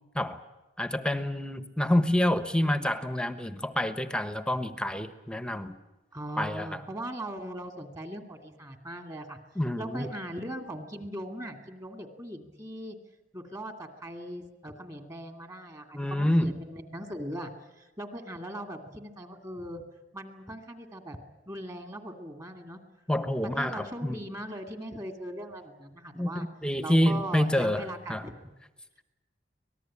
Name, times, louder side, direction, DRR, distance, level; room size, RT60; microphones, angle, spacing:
voice 1, 0.8-5.7 6.4-6.8 9.6-10.1 15.9-16.6 23.1-24.2 26.1-28.3, left 1 dB, 5° left, 11 dB, 1.2 m, -28 dB
voice 2, 6.1-9.4 9.8-13.0 13.3-17.5 17.8-19.8 20.1-21.2 21.5-22.8 23.5-26.5 26.8-28.4, right 1 dB, 20° right, 7 dB, 2.5 m, -39 dB
25.0 x 19.0 x 8.7 m, 1.1 s
head